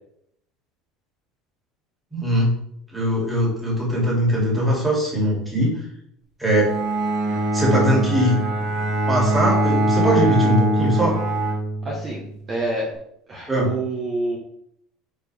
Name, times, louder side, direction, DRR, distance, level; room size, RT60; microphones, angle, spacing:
voice 1, 2.1-2.5 2.9-5.7 6.4-6.7 7.5-8.4 9.1-11.2 13.5-13.7, equal, 5° right, -5 dB, 2.7 m, -21 dB
Bowed string instrument, 6.5-12.3, right 1 dB, 45° right, 2.4 m, -22 dB
voice 2, 11.8-12.2 12.5-12.9 13.3-14.4, right 2 dB, 20° right, -3 dB, 1.3 m, -27 dB
11.0 x 4.5 x 3.5 m, 0.72 s
cardioid pair, 175°, 0 cm